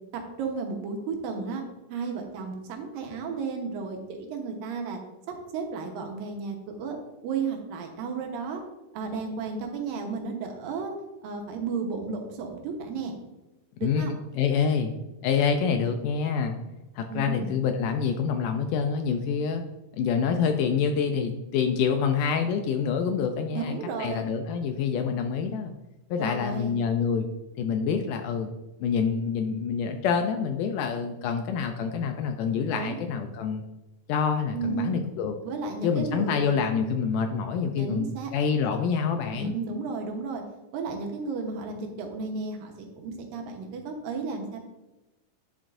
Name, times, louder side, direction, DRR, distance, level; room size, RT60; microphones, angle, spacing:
voice 1, 0.4-1.6 1.9-5.0 5.5-7.0 7.2-8.6 8.9-10.9 11.2-13.1 13.8-14.1 17.1-17.5 23.5-24.2 26.1-26.8 32.7-33.0 34.5-35.0 35.4-36.6 37.8-38.3 39.3-40.4 40.7-44.6, right 4 dB, 80° right, 2 dB, 2.7 m, -33 dB
voice 2, 14.4-14.9 15.2-16.6 17.0-19.6 19.9-25.7 26.1-27.3 27.6-28.5 28.8-33.6 34.1-35.4 35.8-39.5, left 6 dB, 80° left, 6 dB, 2.0 m, -26 dB
10.0 x 7.2 x 2.6 m, 1.0 s
omnidirectional pair, 4.1 m